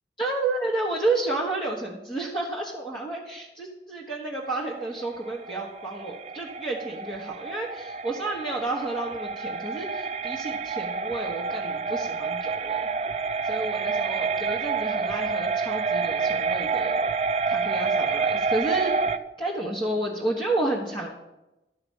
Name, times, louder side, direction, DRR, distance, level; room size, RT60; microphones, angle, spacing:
voice 1, 0.2-12.8 13.4-17.0 17.5-19.0 19.4-21.1, right 2 dB, 25° left, -4 dB, 1.3 m, -31 dB
sound 1, 4.5-19.2, right 4 dB, 35° right, 0.4 m, -28 dB
12.5 x 4.9 x 7.2 m, 0.98 s
head